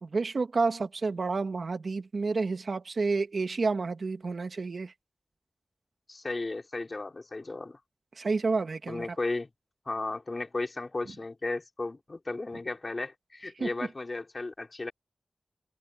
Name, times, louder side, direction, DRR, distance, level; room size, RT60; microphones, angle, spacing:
voice 1, 0.0-4.9 8.2-9.1 13.6-13.7, right 4 dB, 65° right, 2.0 m, -30 dB
voice 2, 6.1-7.8 8.9-9.5 9.8-14.9, left 2 dB, 40° left, 4.9 m, -35 dB
wide cardioid pair, 75°, 0 cm